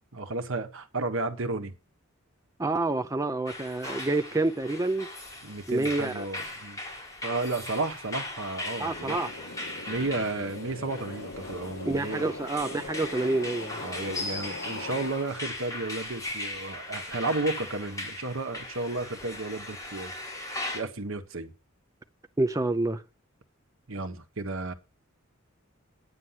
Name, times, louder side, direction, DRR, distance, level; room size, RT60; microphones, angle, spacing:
voice 1, 0.1-1.7 5.4-6.8 7.2-9.2 9.9-12.3 13.8-20.1 20.7-21.5 23.9-24.7, right 2 dB, 70° right, 1.5 m, -33 dB
voice 2, 2.6-5.1 5.7-6.2 8.8-9.3 11.9-13.8 22.4-23.0, right 2 dB, 15° right, 0.6 m, -28 dB
sound 1, 3.5-20.8, left 2 dB, 15° left, 4.6 m, -39 dB
sound 2, 8.6-16.0, left 2 dB, 65° left, 1.9 m, -41 dB
11.0 x 9.3 x 5.9 m
head